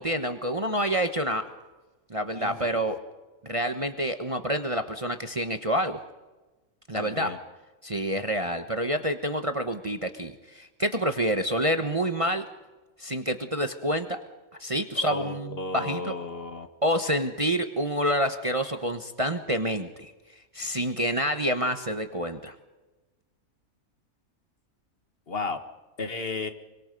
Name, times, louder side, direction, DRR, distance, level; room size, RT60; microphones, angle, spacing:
voice 1, 0.0-1.4 2.1-3.0 3.4-6.0 6.9-7.3 7.8-12.4 13.0-14.2 14.6-16.1 16.8-20.1 20.5-22.5, equal, 25° right, 7 dB, 1.1 m, -28 dB
voice 2, 2.4-2.8 6.9-7.4 15.1-16.7 25.3-25.6 26.0-26.5, left 3 dB, 40° left, 7 dB, 1.8 m, -33 dB
25.5 x 24.5 x 5.3 m, 1.1 s
omnidirectional pair, 1.5 m